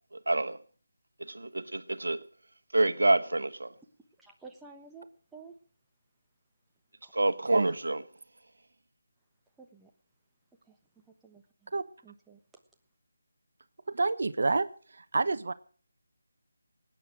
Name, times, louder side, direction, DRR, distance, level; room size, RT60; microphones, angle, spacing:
voice 1, 0.1-0.6 1.2-2.2 2.7-3.7 7.1-8.0, right 2 dB, 75° right, 1.4 m, -27 dB
voice 2, 4.2-5.0 5.3-5.5 7.0-7.1 9.6-9.9 10.7-10.8 11.2-11.7 12.0-12.4, right 4 dB, 5° right, 1.1 m, -51 dB
voice 3, 13.9-15.5, right 3 dB, 60° right, 1.0 m, -29 dB
19.5 x 9.1 x 6.4 m
figure-of-eight pair, 160°, 0 cm